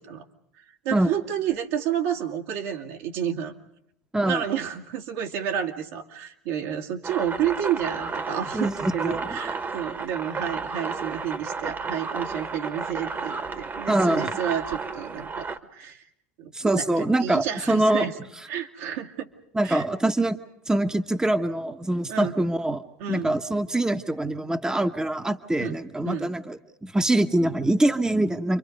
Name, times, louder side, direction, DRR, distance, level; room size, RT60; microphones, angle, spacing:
voice 1, 0.8-3.5 4.2-15.5 15.7-16.0 16.4-18.1 18.5-19.3 19.6-19.9 22.1-22.3 23.0-23.3 25.6-25.8 26.0-26.3, right 9 dB, 70° right, 2 dB, 2.4 m, -30 dB
voice 2, 4.1-4.4 8.5-9.4 13.9-14.3 16.5-18.1 19.5-20.4 20.7-22.8 23.1-28.6, right 1 dB, 10° right, 6 dB, 1.2 m, -24 dB
sound 1, 7.0-15.6, right 4 dB, 25° right, 1.6 m, -33 dB
29.0 x 24.5 x 5.3 m, 0.78 s
hypercardioid pair, 80°, 7 cm